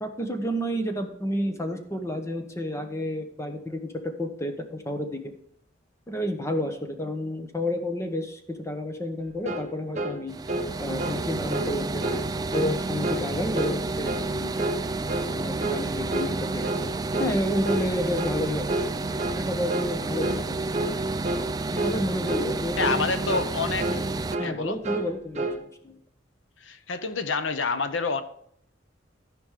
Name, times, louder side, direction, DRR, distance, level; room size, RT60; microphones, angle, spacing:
voice 1, 0.0-5.3 6.1-10.3 10.8-12.2 12.5-14.7 15.3-16.7 17.2-18.7 19.3-20.7 21.7-23.1 24.4-26.0, left 1 dB, 15° left, 6 dB, 1.0 m, -31 dB
sound 1, 9.5-9.7 10.0-10.2 10.5-10.7 11.0-11.2 11.5-11.7 12.0-12.2 12.5-12.8 13.0-13.3 13.6-13.8 14.1-14.3 14.6-14.8 15.1-15.3 15.6-15.8 16.1-16.3 16.6-16.9 17.1-17.4 17.6-17.9 18.2-18.4 18.7-18.9 19.2-19.4 19.7-19.9 20.2-20.4 20.7-21.0 21.2-21.5 21.8-22.0 22.3-22.5 22.8-23.0 23.3-23.5 23.8-24.1 24.3-24.5 24.8-25.6, right 1 dB, 35° right, 1.1 m, -29 dB
sound 2, 10.3-24.4, right 2 dB, 20° right, 0.4 m, -30 dB
voice 2, 22.8-24.0 24.4-24.8 26.6-28.2, left 4 dB, 75° left, 10 dB, 0.8 m, -28 dB
14.0 x 5.2 x 5.0 m, 0.68 s
head